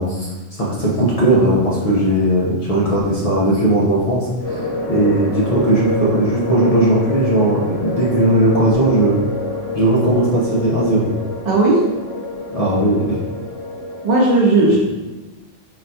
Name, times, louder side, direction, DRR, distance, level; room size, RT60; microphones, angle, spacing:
voice 1, 0.0-4.6 4.9-9.2 9.7-11.1 12.5-13.2 14.7-14.8, right 1 dB, 60° left, -5 dB, 0.4 m, -17 dB
sound 1, 4.4-14.1, left 1 dB, 20° left, 1.1 m, -27 dB
voice 2, 11.5-11.8 14.0-14.8, right 2 dB, 65° right, -4 dB, 0.4 m, -14 dB
3.8 x 2.2 x 2.6 m, 1.1 s
omnidirectional pair, 1.3 m